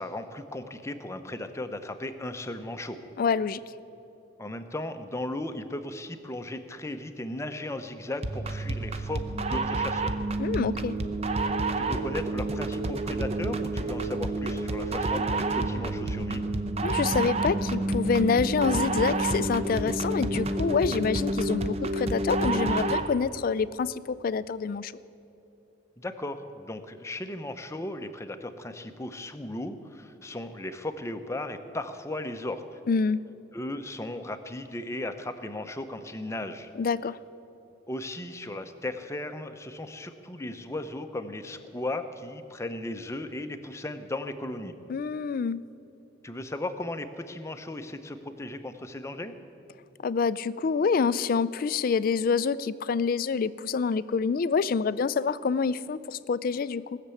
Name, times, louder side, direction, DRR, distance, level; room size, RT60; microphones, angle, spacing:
voice 1, 0.0-3.0 4.4-10.2 11.8-16.5 26.0-32.8 33.5-36.7 37.9-44.7 46.2-49.3, left 1 dB, 15° left, 8 dB, 0.7 m, -36 dB
voice 2, 3.2-3.6 10.4-11.0 16.8-24.9 32.9-33.2 36.8-37.2 44.9-45.6 50.0-57.0, left 5 dB, 45° left, 17 dB, 0.3 m, -27 dB
sound 1, 8.2-23.2, right 2 dB, 30° right, 0.6 m, -29 dB
18.5 x 6.7 x 8.3 m, 2.9 s
head